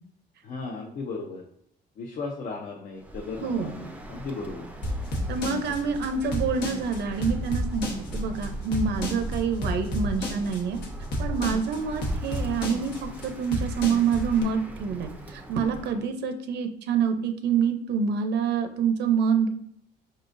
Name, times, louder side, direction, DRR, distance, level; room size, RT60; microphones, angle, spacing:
voice 1, 0.4-1.4 2.0-4.7, left 3 dB, 50° left, 0 dB, 0.6 m, -36 dB
Bird, 3.0-16.1, right 1 dB, 10° right, 0.4 m, -39 dB
voice 2, 3.4-3.7 5.3-10.8 11.2-19.5, right 6 dB, 70° right, 7 dB, 0.5 m, -27 dB
sound 1, 4.8-14.4, left 1 dB, 75° left, 1.1 m, -31 dB
5.2 x 3.8 x 2.5 m, 0.71 s
cardioid pair, 150°, 18 cm